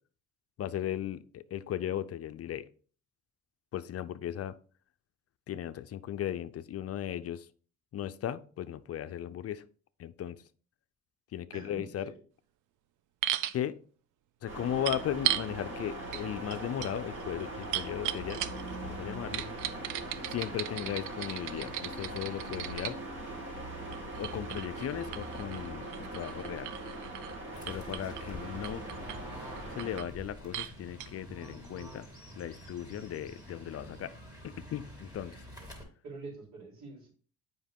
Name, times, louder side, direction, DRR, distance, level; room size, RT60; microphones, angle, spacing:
voice 1, 0.6-2.7 3.7-4.6 5.5-7.5 7.9-9.6 10.0-10.4 11.3-12.1 13.5-13.8 14.4-18.4 18.8-19.4 20.3-23.0 24.1-26.7 27.7-28.8 29.7-32.1 32.4-34.1 34.4-35.4, left 10 dB, 50° left, 13 dB, 0.5 m, -37 dB
voice 2, 11.5-12.1 36.0-37.1, right 3 dB, 65° right, -2 dB, 4.1 m, -45 dB
sound 1, 13.2-13.6 14.9-15.5 16.1-16.2 16.5-18.8 19.3-23.0 23.9-27.4 27.7-28.2 28.6-29.2 29.6-30.1 30.5-30.7 31.0-31.1, right 13 dB, 85° right, 0.5 m, -36 dB
sound 2, 14.5-30.0, right 1 dB, 40° right, 2.5 m, -41 dB
Fowl / Bird, 27.5-35.8, equal, 15° right, 2.6 m, -48 dB
8.0 x 5.3 x 3.6 m, 0.42 s
cardioid pair, 90°, 30 cm